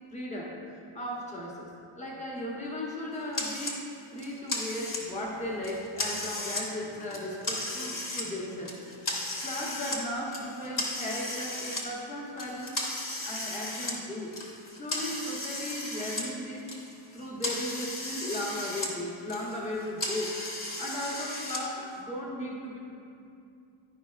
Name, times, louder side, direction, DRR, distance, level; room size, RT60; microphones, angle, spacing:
voice 1, 0.1-0.6 0.9-1.7 2.0-9.2 9.4-12.8 13.2-14.3 14.7-16.7 17.1-20.5 20.8-22.8, left 1 dB, 15° left, -3 dB, 1.0 m, -36 dB
sound 1, 3.3-3.8 4.2-5.2 5.6-6.7 7.0-8.3 8.7-10.0 10.3-11.8 12.4-16.3 16.6-18.9 19.2-21.6, left 2 dB, 40° left, 1.0 m, -35 dB
10.5 x 5.4 x 2.4 m, 2.5 s
wide cardioid pair, 175°, 49 cm